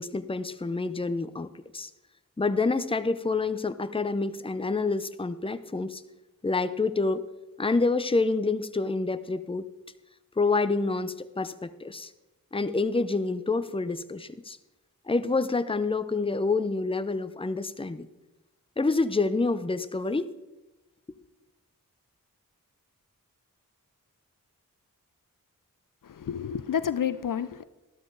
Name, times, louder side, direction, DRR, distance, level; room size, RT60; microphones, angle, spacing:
voice 1, 0.0-1.9 2.4-6.0 6.4-7.3 7.6-9.7 10.4-12.1 12.5-14.6 15.1-18.1 18.8-20.3, left 3 dB, 15° left, 12 dB, 0.7 m, -27 dB
voice 2, 26.0-27.6, left 8 dB, 70° left, 14 dB, 0.6 m, -30 dB
12.5 x 12.5 x 4.0 m, 1.0 s
cardioid pair, 50°, 34 cm